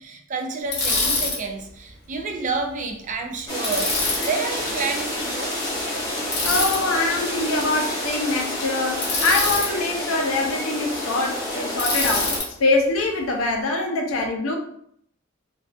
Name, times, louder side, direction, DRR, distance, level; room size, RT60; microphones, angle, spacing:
voice 1, 0.0-5.6, right 4 dB, 40° right, 3 dB, 0.3 m, -29 dB
Bicycle, 0.7-1.4 3.6-4.3 6.3-6.8 9.0-9.7 11.8-12.5, left 3 dB, 55° left, 0.8 m, -24 dB
sound 1, 3.5-12.4, left 1 dB, 20° left, 0.6 m, -29 dB
voice 2, 6.4-12.3 12.6-14.6, left 2 dB, 90° left, 2 dB, 0.5 m, -24 dB
2.4 x 2.2 x 2.3 m, 0.69 s
head